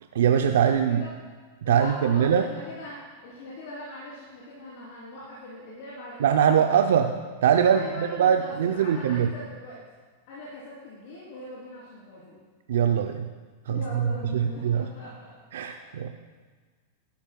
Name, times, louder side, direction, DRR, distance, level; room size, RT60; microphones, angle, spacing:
voice 1, 0.1-1.0 1.6-2.4 6.2-7.1 7.4-9.3 12.7-13.3 13.7-14.9 15.5-16.1, right 8 dB, 75° right, 6 dB, 0.5 m, -22 dB
voice 2, 1.6-6.6 7.7-9.8 10.3-12.4 13.7-15.3 15.6-15.9, left 1 dB, 60° left, -8 dB, 3.4 m, -41 dB
15.0 x 11.5 x 2.3 m, 1.4 s
hypercardioid pair, 110°, 0 cm